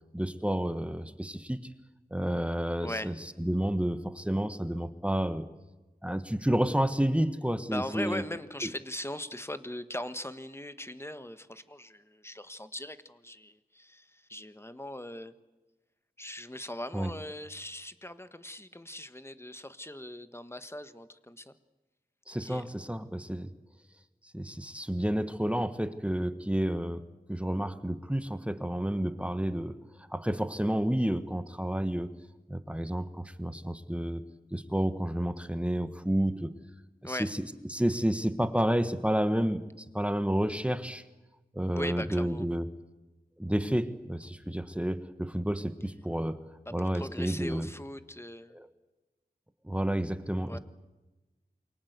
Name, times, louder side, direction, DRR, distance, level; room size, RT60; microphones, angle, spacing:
voice 1, 0.1-1.7 2.1-5.5 6.0-8.2 8.6-8.7 16.9-17.1 22.3-23.5 24.3-27.0 27.3-29.8 30.1-32.1 32.5-34.2 34.5-36.5 37.0-41.0 41.5-42.7 43.4-46.4 46.7-47.7 48.5-48.7 49.6-50.6, right 1 dB, 5° right, 11 dB, 1.5 m, -30 dB
voice 2, 2.8-3.1 7.7-15.3 16.2-21.5 22.4-22.6 37.0-37.3 41.7-42.5 46.7-48.6 50.5-50.6, left 1 dB, 15° left, 11 dB, 1.5 m, -40 dB
28.5 x 23.5 x 8.2 m, 1.1 s
wide cardioid pair, 80°, 16 cm